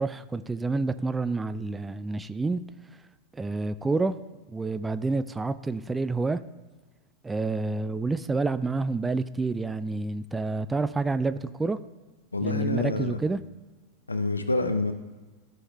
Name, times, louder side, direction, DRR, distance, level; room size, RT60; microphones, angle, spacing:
voice 1, 0.0-2.6 3.3-4.2 4.5-6.4 7.2-11.8 12.4-13.5, right 3 dB, 10° right, 13 dB, 0.3 m, -28 dB
voice 2, 12.3-13.2 14.1-14.9, left 2 dB, 80° left, 10 dB, 0.7 m, -27 dB
14.0 x 5.5 x 3.2 m, 1.3 s
figure-of-eight pair, 90°, 0 cm